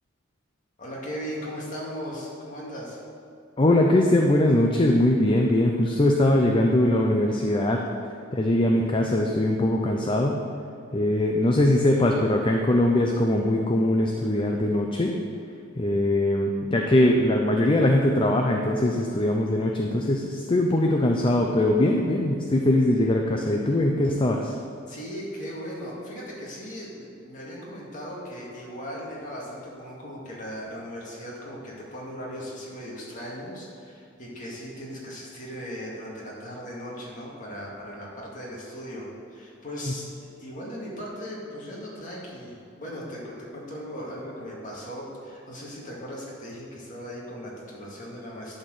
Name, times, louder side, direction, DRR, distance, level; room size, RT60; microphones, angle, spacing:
voice 1, 0.8-3.0 24.9-48.6, equal, 40° left, -4 dB, 2.2 m, -38 dB
voice 2, 3.6-7.8 8.3-10.4 10.9-15.2 15.8-24.5, left 1 dB, 25° left, 1 dB, 0.5 m, -21 dB
11.0 x 4.4 x 6.5 m, 2.5 s
head